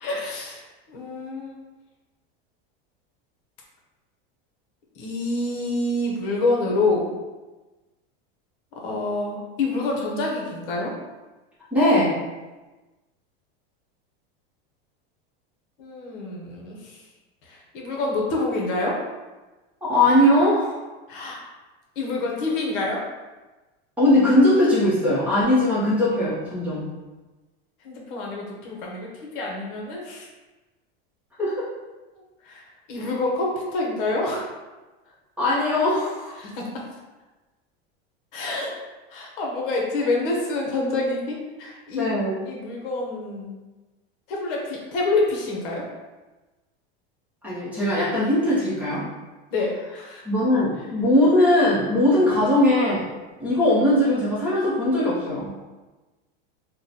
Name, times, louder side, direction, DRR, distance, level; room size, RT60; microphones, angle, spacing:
voice 1, 0.0-1.7 5.0-7.1 8.7-10.9 15.8-17.0 17.4-19.0 21.1-21.4 22.0-23.0 27.8-30.3 32.4-34.5 36.4-36.8 38.3-38.8 39.1-42.2 42.4-43.6 44.3-45.8 49.5-50.2, left 2 dB, 60° left, -1 dB, 0.9 m, -27 dB
voice 2, 11.7-12.1 19.8-20.8 24.0-26.8 31.4-31.7 35.4-36.4 42.0-42.4 47.4-49.0 50.2-53.0 53.4-55.5, left 1 dB, 5° right, -10 dB, 0.8 m, -20 dB
3.0 x 2.2 x 4.0 m, 1.2 s
supercardioid pair, 160°, 30 cm